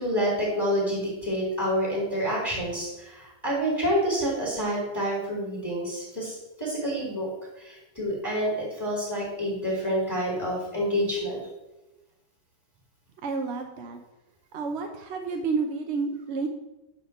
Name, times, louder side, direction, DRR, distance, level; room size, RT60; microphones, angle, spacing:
voice 1, 0.0-7.3 7.6-11.4, equal, 10° left, -5 dB, 2.6 m, -28 dB
voice 2, 13.2-14.0 14.5-16.5, right 4 dB, 55° right, 4 dB, 0.7 m, -30 dB
10.5 x 3.6 x 6.6 m, 1.0 s
omnidirectional pair, 1.9 m